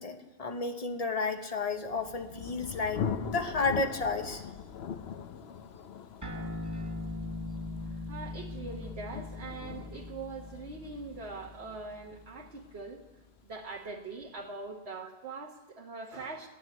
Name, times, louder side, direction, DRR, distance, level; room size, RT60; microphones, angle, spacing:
voice 1, 0.0-4.5, left 3 dB, 35° left, 6 dB, 1.1 m, -32 dB
Thunder, 1.6-13.2, left 7 dB, 65° left, 0.9 m, -41 dB
sound 1, 6.2-13.0, left 2 dB, 15° right, 1.4 m, -41 dB
voice 2, 7.9-13.0 13.4-16.5, right 3 dB, 65° right, -1 dB, 1.4 m, -42 dB
12.5 x 9.2 x 8.1 m, 1.1 s
omnidirectional pair, 1.1 m